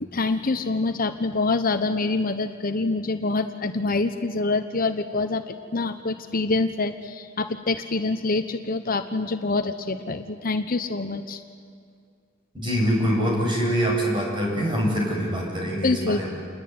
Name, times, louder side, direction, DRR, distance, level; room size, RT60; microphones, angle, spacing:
voice 1, 0.0-11.4 15.8-16.3, left 3 dB, 45° left, 8 dB, 1.1 m, -26 dB
voice 2, 12.5-16.3, equal, 25° right, -1 dB, 7.7 m, -24 dB
28.5 x 21.5 x 9.6 m, 2.2 s
head